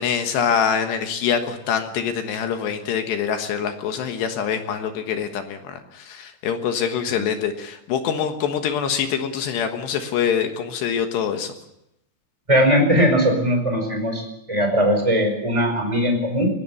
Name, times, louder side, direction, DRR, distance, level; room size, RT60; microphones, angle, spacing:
voice 1, 0.0-11.5, left 7 dB, 70° left, 6 dB, 3.1 m, -24 dB
voice 2, 12.5-14.2 14.5-16.5, equal, 5° right, 4 dB, 4.3 m, -19 dB
22.0 x 17.0 x 8.6 m, 0.83 s
omnidirectional pair, 6.0 m